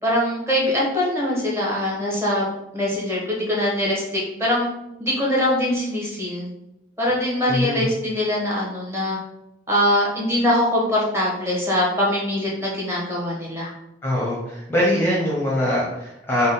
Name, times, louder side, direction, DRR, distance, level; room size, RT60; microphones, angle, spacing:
voice 1, 0.0-4.7 5.0-6.5 7.0-9.2 9.7-13.7, left 1 dB, 15° right, -4 dB, 1.0 m, -22 dB
voice 2, 7.5-7.9 14.0-16.5, left 1 dB, 10° left, -5 dB, 0.7 m, -22 dB
3.5 x 2.1 x 4.0 m, 0.88 s
head